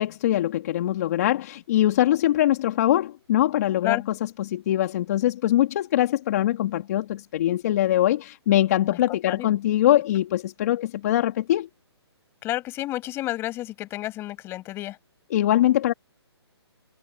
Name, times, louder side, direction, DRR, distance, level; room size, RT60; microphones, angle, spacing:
voice 1, 0.0-11.7 15.3-15.9, left 13 dB, 40° left, 3.1 m, -22 dB
voice 2, 8.9-9.5 12.4-15.0, left 15 dB, 15° left, 6.9 m, -31 dB
hypercardioid pair, 160°, 14 cm